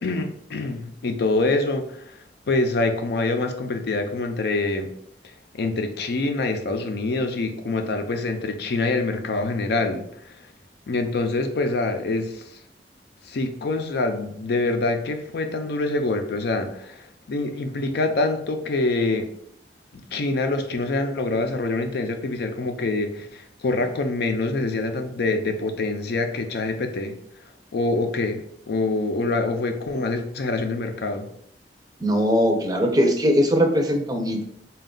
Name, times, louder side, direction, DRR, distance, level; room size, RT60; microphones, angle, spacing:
voice 1, 0.0-2.2 2.5-4.9 5.5-10.0 10.3-10.4 10.9-12.5 13.2-19.3 19.9-27.1 27.7-28.4 28.7-31.3, left 2 dB, 65° left, 6 dB, 0.5 m, -25 dB
voice 2, 32.0-34.4, equal, 20° right, 4 dB, 0.5 m, -20 dB
4.2 x 2.3 x 3.8 m, 0.71 s
head